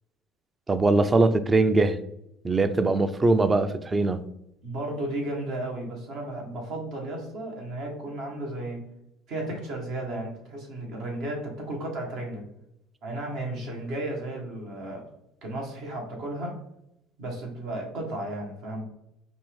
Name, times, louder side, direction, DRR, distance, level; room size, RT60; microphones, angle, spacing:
voice 1, 0.7-2.0 2.4-4.2, right 2 dB, 25° right, 11 dB, 0.4 m, -21 dB
voice 2, 4.6-8.9 9.3-12.4 13.0-15.1 15.4-16.6 17.2-18.8, right 1 dB, 65° right, 1 dB, 1.4 m, -34 dB
5.1 x 2.6 x 3.4 m, 0.80 s
hypercardioid pair, 75°, 0 cm